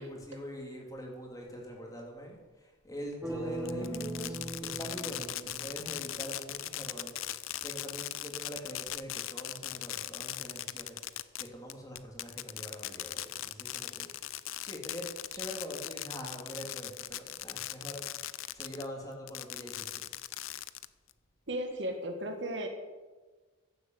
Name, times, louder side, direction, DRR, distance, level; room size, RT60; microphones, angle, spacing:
voice 1, 0.0-7.2 7.6-14.3 14.6-20.1, equal, 15° left, 0 dB, 2.8 m, -44 dB
sound 1, 3.2-6.3, right 2 dB, 5° right, 1.2 m, -39 dB
Fireworks, 3.7-18.9 19.3-21.1, left 14 dB, 90° left, 0.6 m, -39 dB
voice 2, 21.5-22.7, right 1 dB, 60° right, 5 dB, 1.9 m, -35 dB
14.5 x 8.0 x 8.0 m, 1.3 s
head